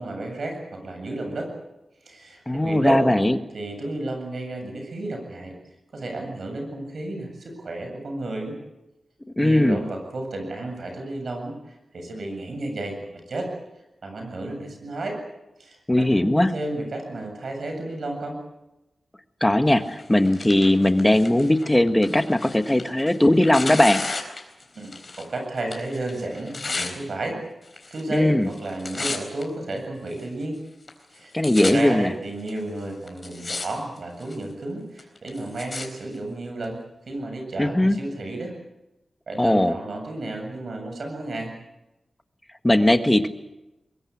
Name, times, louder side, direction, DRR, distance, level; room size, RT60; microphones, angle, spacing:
voice 1, 0.0-1.5 2.0-3.2 3.5-5.6 5.9-8.6 9.4-13.0 13.3-13.5 14.0-15.2 15.6-18.4 24.7-27.4 27.9-30.6 31.1-31.3 31.6-36.8 37.1-38.5 39.3-41.5, right 2 dB, 65° right, 4 dB, 7.7 m, -32 dB
voice 2, 2.5-3.4 9.4-9.8 15.9-16.5 19.4-24.0 28.1-28.5 31.3-32.1 37.6-38.0 39.4-39.7 42.6-43.3, left 1 dB, 10° left, 8 dB, 1.5 m, -19 dB
Tearing, 19.9-25.3 25.6-26.9 27.7-28.2 28.5-29.4 30.1-30.2 30.9-31.0 31.2-31.7 32.5-32.6 33.1-33.7 34.0-34.4 35.0-35.9 36.6-36.7, left 3 dB, 40° left, 4.2 m, -33 dB
23.5 x 21.5 x 8.6 m, 0.97 s
wide cardioid pair, 115°, 0 cm